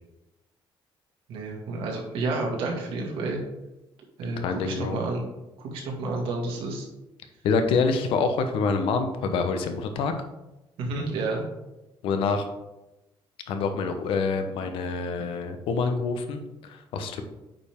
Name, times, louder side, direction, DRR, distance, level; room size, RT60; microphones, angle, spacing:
voice 1, 1.3-3.4 4.2-5.3 5.6-6.9 10.8-11.4 14.6-14.7, right 3 dB, 70° right, -1 dB, 2.0 m, -30 dB
voice 2, 4.4-5.0 7.4-10.1 12.0-12.5 13.5-17.2, left 4 dB, 75° left, 7 dB, 0.9 m, -26 dB
8.9 x 5.3 x 3.6 m, 0.98 s
cardioid pair, 180°, 9 cm